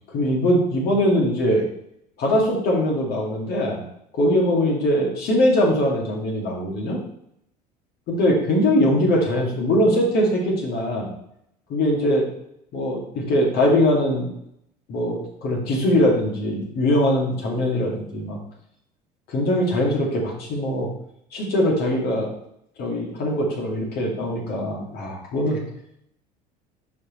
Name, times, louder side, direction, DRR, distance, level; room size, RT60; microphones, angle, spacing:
voice 1, 0.1-1.6 2.2-3.8 4.1-7.0 8.1-11.1 11.7-12.3 12.7-14.3 14.9-18.4 19.3-20.9 21.3-22.3 22.8-25.6, left 1 dB, 50° left, -2 dB, 2.4 m, -21 dB
10.5 x 5.3 x 3.2 m, 0.76 s
figure-of-eight pair, 65°, 21 cm